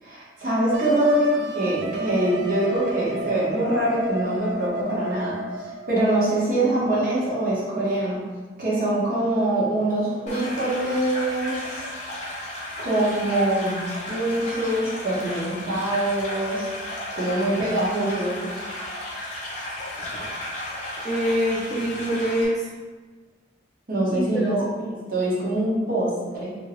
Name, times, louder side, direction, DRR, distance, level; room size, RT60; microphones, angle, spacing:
voice 1, 0.0-5.4 5.9-8.2 8.6-11.8 12.8-13.8 14.1-16.7 17.1-18.4 23.9-24.6 24.9-26.5, right 1 dB, 50° right, -8 dB, 1.1 m, -24 dB
Wind instrument woodwind instrument, 0.7-6.2, right 2 dB, 90° right, 0.3 m, -32 dB
sound 1, 10.3-22.5, left 1 dB, 40° left, 0.6 m, -34 dB
voice 2, 21.0-22.7 24.1-24.7, equal, ahead, -9 dB, 0.5 m, -25 dB
2.8 x 2.7 x 3.0 m, 1.3 s
head